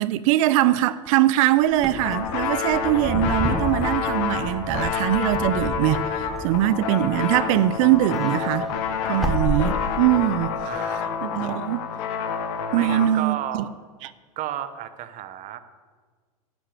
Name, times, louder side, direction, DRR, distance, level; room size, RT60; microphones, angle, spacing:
voice 1, 0.0-8.7 9.1-10.5 11.2-11.8 12.7-13.6 14.0-14.1, right 13 dB, 65° right, 0.5 m, -22 dB
Wind / Car, 1.7-7.5 7.9-10.3, equal, ahead, 1.5 m, -31 dB
sound 1, 2.0-13.1, left 6 dB, 65° left, 1.6 m, -28 dB
voice 2, 10.7-11.2 12.7-13.7 14.4-15.6, right 11 dB, 45° right, 0.9 m, -33 dB
11.5 x 5.8 x 8.3 m
hypercardioid pair, 95°, 19 cm